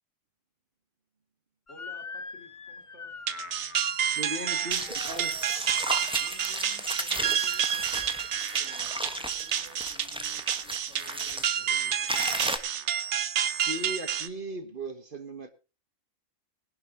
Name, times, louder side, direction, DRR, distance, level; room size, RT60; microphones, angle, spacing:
voice 1, 1.7-3.2 6.2-12.1, left 2 dB, 60° left, 3 dB, 3.2 m, -54 dB
Motor vehicle (road) / Siren, 1.7-6.9, left 4 dB, 30° left, 0.7 m, -44 dB
sound 1, 3.3-14.3, right 9 dB, 60° right, 1.1 m, -29 dB
voice 2, 4.2-5.3 13.6-15.5, right 1 dB, 40° right, 8 dB, 1.5 m, -37 dB
sound 2, 4.7-11.5 12.1-12.6, equal, 5° right, 1.2 m, -35 dB
20.5 x 11.0 x 2.9 m, 0.30 s
omnidirectional pair, 1.4 m